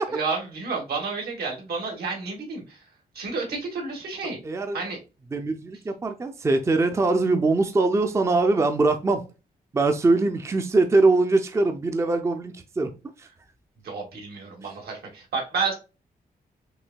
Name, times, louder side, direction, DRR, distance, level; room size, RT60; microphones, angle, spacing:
voice 1, 0.1-2.8 3.1-4.4 4.7-5.0 13.8-15.8, right 4 dB, 85° right, 1.9 m, -30 dB
voice 2, 4.4-4.8 5.3-9.2 9.7-12.9, right 3 dB, 20° right, 0.4 m, -22 dB
6.1 x 2.7 x 2.2 m
wide cardioid pair, 155°, 16 cm